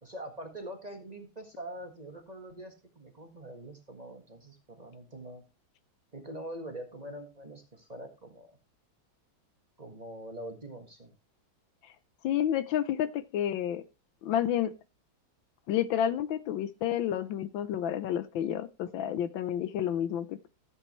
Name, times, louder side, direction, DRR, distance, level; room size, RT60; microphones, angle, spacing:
voice 1, 0.0-5.4 6.1-8.6 9.8-11.1, right 1 dB, 20° right, 4 dB, 1.6 m, -44 dB
voice 2, 12.2-13.8 14.2-14.7 15.7-20.4, left 10 dB, 75° left, 14 dB, 1.4 m, -30 dB
14.5 x 7.8 x 3.1 m, 0.28 s
omnidirectional pair, 2.2 m